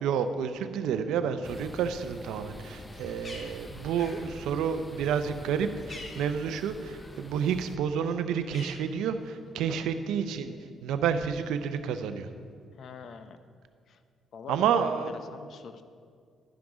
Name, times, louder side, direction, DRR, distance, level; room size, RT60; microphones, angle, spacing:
voice 1, 0.0-10.6 10.8-12.3 14.5-15.1, right 7 dB, 90° right, 10 dB, 0.5 m, -30 dB
sound 1, 1.4-7.8, left 1 dB, 15° left, 0.6 m, -46 dB
Bird, 2.7-7.3 7.6-9.5, left 2 dB, 40° left, 1.4 m, -49 dB
voice 2, 12.7-13.4 13.9-14.0 14.3-14.9 15.3-15.8, left 6 dB, 65° left, 9 dB, 0.6 m, -45 dB
11.0 x 6.0 x 5.1 m, 2.2 s
cardioid pair, 90°, 0 cm